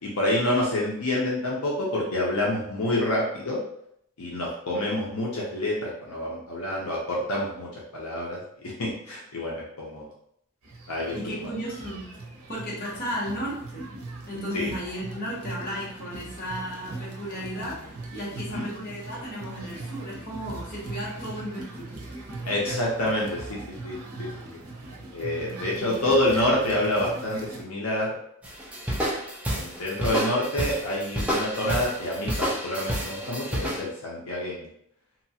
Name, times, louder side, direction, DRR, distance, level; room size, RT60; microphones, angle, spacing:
voice 1, 0.0-3.6 4.2-10.1 10.9-11.5 14.5-14.7 18.5-18.7 22.4-24.3 25.1-28.1 29.0-29.2 29.5-34.7, left 1 dB, 75° left, -4 dB, 0.7 m, -28 dB
sound 1, 10.6-27.6, right 2 dB, 75° right, 0.6 m, -40 dB
voice 2, 11.1-12.1 12.5-13.9 14.3-22.0 25.4-26.1, equal, 40° left, -5 dB, 0.9 m, -35 dB
sound 2, 28.4-33.8, equal, 5° right, 0.4 m, -30 dB
2.9 x 2.3 x 2.7 m, 0.72 s
head